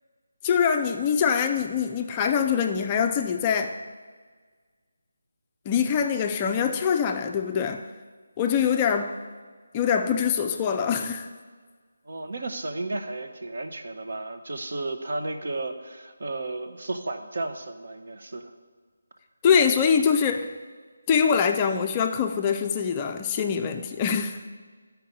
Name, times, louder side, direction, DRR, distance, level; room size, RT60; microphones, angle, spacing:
voice 1, 0.4-3.8 5.7-7.9 8.4-9.2 9.7-11.3 19.4-20.6 21.1-24.4, left 7 dB, 20° left, 0.4 m, -24 dB
voice 2, 12.1-18.5, right 2 dB, 60° right, 0.8 m, -33 dB
12.0 x 4.6 x 5.3 m
figure-of-eight pair, 160°, 0 cm